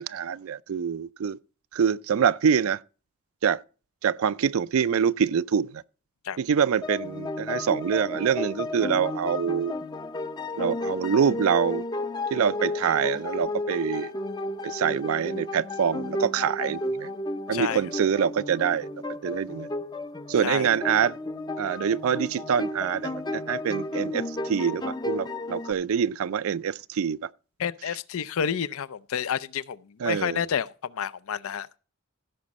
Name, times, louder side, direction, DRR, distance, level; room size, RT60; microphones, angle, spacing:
voice 1, 0.0-1.4 1.7-2.8 3.4-3.6 4.0-5.8 6.4-9.7 10.6-11.8 12.3-14.1 14.6-17.1 17.5-18.9 19.2-19.7 20.3-21.2 21.6-27.3 30.0-30.5, right 7 dB, 80° right, 0.4 m, -25 dB
sound 1, 6.8-25.7, left 2 dB, 20° left, 0.5 m, -33 dB
voice 2, 27.6-29.8 30.0-31.7, left 7 dB, 80° left, 0.5 m, -29 dB
15.5 x 6.2 x 4.1 m
head